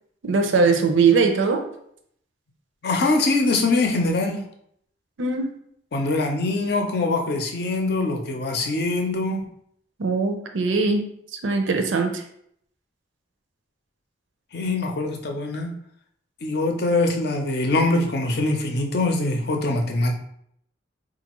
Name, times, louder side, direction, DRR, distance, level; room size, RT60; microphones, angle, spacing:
voice 1, 0.2-1.6 5.2-5.5 10.0-11.0 11.4-12.2, right 4 dB, 85° right, 5 dB, 0.5 m, -20 dB
voice 2, 2.8-4.4 5.9-9.5 14.5-15.7 16.4-20.1, left 2 dB, 55° left, 3 dB, 0.5 m, -23 dB
3.9 x 2.5 x 3.0 m, 0.70 s
head